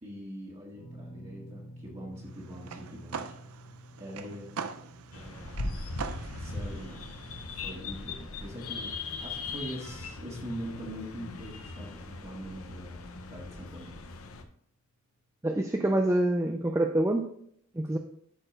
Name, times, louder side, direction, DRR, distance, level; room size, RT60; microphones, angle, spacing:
voice 1, 0.0-3.3 4.0-4.5 5.1-5.8 6.4-7.1 7.5-13.9, equal, 30° right, -5 dB, 1.8 m, -43 dB
sound 1, 0.7-13.0 13.2-13.5 15.1-15.2, right 1 dB, 35° left, 1.8 m, -53 dB
sound 2, 2.2-7.7, right 5 dB, 90° right, 0.5 m, -42 dB
sound 3, 5.1-14.4, left 3 dB, 85° left, 0.9 m, -39 dB
voice 2, 15.4-17.3 17.7-18.0, right 1 dB, 15° right, 4 dB, 0.4 m, -26 dB
12.0 x 4.4 x 3.2 m, 0.66 s
head